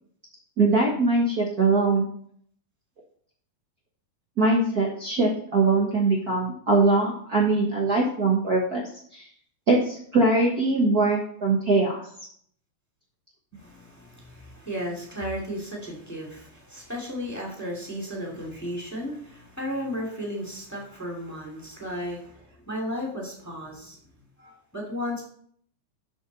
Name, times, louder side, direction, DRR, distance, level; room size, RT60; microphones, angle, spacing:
voice 1, 0.6-2.1 4.4-8.8 9.1-9.3 9.7-12.0, right 3 dB, 65° right, -2 dB, 0.9 m, -22 dB
voice 2, 13.5-24.0 24.4-25.2, equal, 5° left, -1 dB, 1.7 m, -34 dB
12.5 x 6.2 x 4.1 m, 0.62 s
omnidirectional pair, 4.1 m